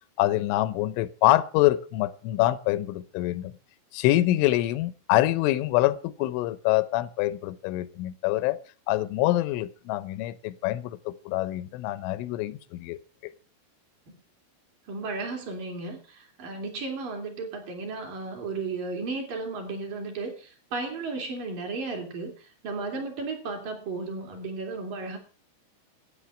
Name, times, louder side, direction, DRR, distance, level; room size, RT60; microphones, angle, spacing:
voice 1, 0.2-3.5 3.9-8.6 8.9-13.3, left 16 dB, 85° left, 3.2 m, -25 dB
voice 2, 14.9-25.2, right 3 dB, 50° right, 3.8 m, -34 dB
13.5 x 8.8 x 6.1 m
omnidirectional pair, 5.5 m